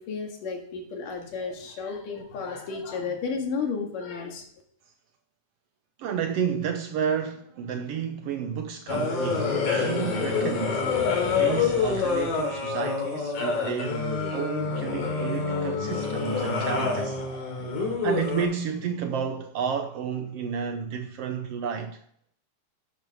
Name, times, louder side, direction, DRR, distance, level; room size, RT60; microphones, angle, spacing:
voice 1, 0.0-4.5, left 5 dB, 80° left, 3.5 m, -33 dB
voice 2, 6.0-11.0 11.3-14.0 14.3-17.2 18.0-22.0, right 7 dB, 80° right, 1.3 m, -31 dB
sound 1, 8.9-18.4, left 4 dB, 65° left, 3.9 m, -27 dB
12.0 x 8.8 x 3.5 m
omnidirectional pair, 3.7 m